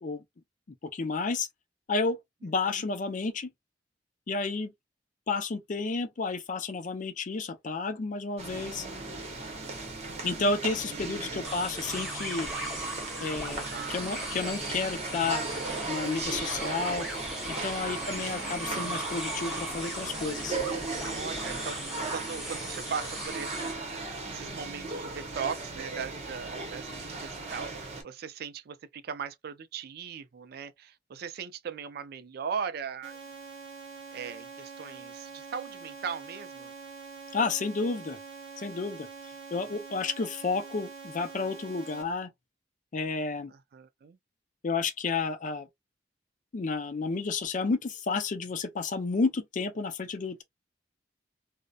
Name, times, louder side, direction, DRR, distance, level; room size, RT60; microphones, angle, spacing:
voice 1, 0.9-1.5 1.9-3.5 4.3-4.7 5.3-8.9 10.2-12.5 13.2-13.6 13.9-15.4 15.9-17.1 17.5-20.6 37.3-38.2 38.6-39.1 39.5-42.3 42.9-43.5 44.6-45.7 46.5-50.4, left 4 dB, 45° left, 0.4 m, -31 dB
voice 2, 2.4-2.8 10.9-11.5 13.7-14.0 17.8-18.6 21.0-33.2 34.1-36.7 39.7-39.8 43.5-44.2, right 6 dB, 60° right, 0.4 m, -39 dB
sound 1, 8.4-28.0, right 3 dB, 35° right, 0.8 m, -37 dB
sound 2, 11.4-23.7, equal, ahead, 0.9 m, -38 dB
sound 3, 33.0-42.0, right 5 dB, 75° right, 0.8 m, -45 dB
2.6 x 2.1 x 2.2 m
head